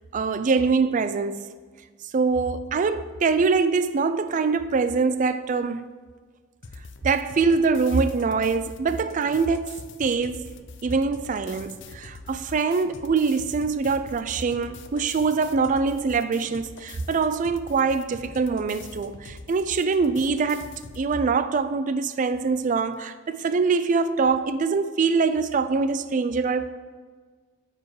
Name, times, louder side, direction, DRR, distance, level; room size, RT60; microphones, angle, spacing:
voice 1, 0.1-1.4 2.1-5.8 7.0-10.5 10.8-20.7 21.0-26.7, right 4 dB, 35° right, 0.3 m, -24 dB
sound 1, 6.6-21.1, left 3 dB, 60° left, 0.5 m, -44 dB
9.0 x 4.9 x 4.7 m
head